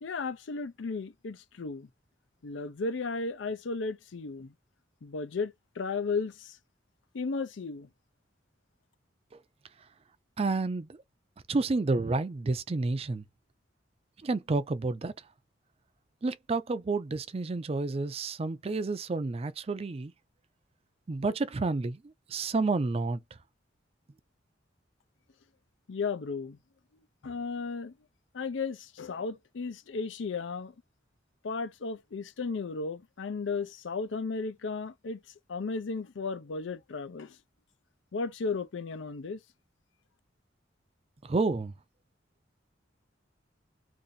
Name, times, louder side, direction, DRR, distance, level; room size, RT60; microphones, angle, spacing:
voice 1, 0.0-1.9 2.4-4.5 5.0-6.6 7.1-7.9 25.9-26.6 27.2-27.9 28.3-30.7 31.4-35.2 35.5-37.4 38.1-39.4, left 4 dB, 80° left, 0.5 m, -34 dB
voice 2, 10.4-11.0 11.5-13.2 14.2-15.1 16.2-20.1 21.1-23.4 41.2-41.7, right 3 dB, 30° right, 0.4 m, -30 dB
2.6 x 2.6 x 3.9 m
head